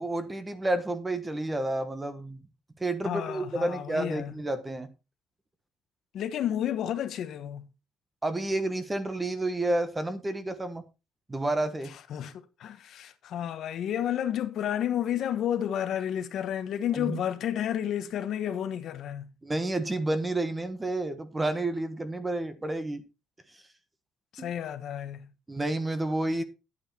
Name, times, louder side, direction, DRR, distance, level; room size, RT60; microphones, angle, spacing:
voice 1, 0.0-2.4 2.8-4.9 8.2-10.8 11.3-11.9 16.9-17.2 19.4-23.0 24.4-24.5 25.5-26.4, right 2 dB, 10° right, 1.2 m, -30 dB
voice 2, 3.0-4.3 6.1-7.7 12.1-19.3 24.3-25.3, left 10 dB, 50° left, 1.1 m, -31 dB
11.0 x 8.6 x 4.3 m
cardioid pair, 175°, 0 cm